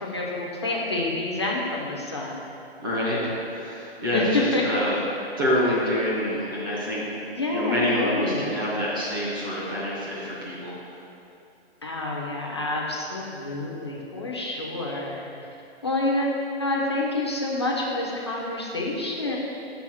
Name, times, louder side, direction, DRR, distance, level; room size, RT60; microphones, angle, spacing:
voice 1, 0.0-2.4 4.1-4.6 7.3-8.6 11.8-15.2 15.8-19.4, left 2 dB, 25° left, -3 dB, 0.5 m, -28 dB
voice 2, 2.8-5.0 5.4-7.1 7.5-10.7, left 1 dB, 20° right, -7 dB, 0.8 m, -26 dB
6.2 x 3.4 x 6.0 m, 2.7 s
hypercardioid pair, 180°, 32 cm